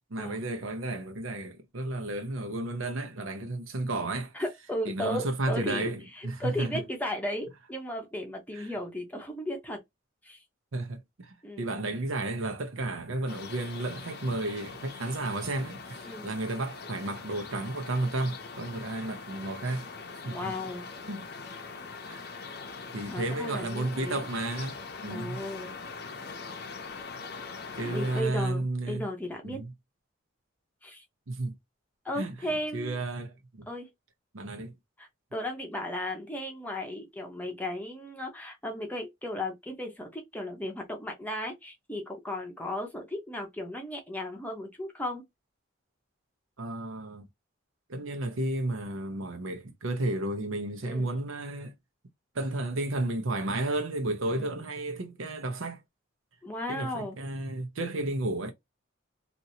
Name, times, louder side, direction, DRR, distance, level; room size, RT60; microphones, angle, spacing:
voice 1, 0.1-4.3 4.9-6.8 8.5-8.7 10.7-19.9 20.2-20.5 21.1-21.2 22.1-22.4 22.9-24.8 25.0-25.4 27.8-29.1 29.4-29.7 31.3-31.6 32.2-32.3 32.7-33.7 34.3-34.7 46.6-47.2 47.9-51.7 52.3-55.8 56.7-58.5, right 2 dB, 90° right, 0.8 m, -32 dB
voice 2, 4.3-9.8 10.2-10.4 11.4-11.7 16.0-16.2 20.2-20.9 23.1-24.3 25.1-25.7 27.8-29.6 30.8-31.0 32.0-33.0 33.7-33.9 35.0-45.2 50.8-51.1 54.4-54.5 56.4-57.2, left 1 dB, 10° left, 0.7 m, -35 dB
sound 1, 13.3-28.2, left 4 dB, 50° left, 0.6 m, -42 dB
2.9 x 2.6 x 2.7 m
head